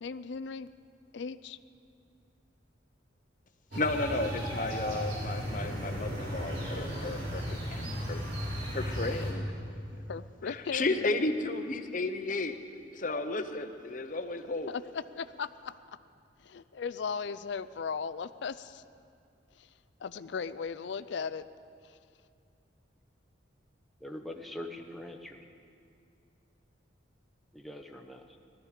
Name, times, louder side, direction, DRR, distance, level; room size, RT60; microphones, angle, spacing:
voice 1, 0.0-0.7 1.1-1.6 10.1-11.0 14.7-15.7 16.4-18.8 19.6-19.7 20.0-21.4 21.8-22.0, left 5 dB, 65° left, 13 dB, 0.4 m, -37 dB
voice 2, 3.7-8.2 8.7-9.5 10.4-12.6 12.9-14.7, left 2 dB, 40° left, 8 dB, 0.8 m, -33 dB
sound 1, 3.7-9.3, equal, 75° right, 4.7 m, -35 dB
voice 3, 24.0-25.4 27.5-28.4, left 1 dB, ahead, 2 dB, 0.8 m, -43 dB
19.5 x 13.5 x 5.0 m, 2.5 s
head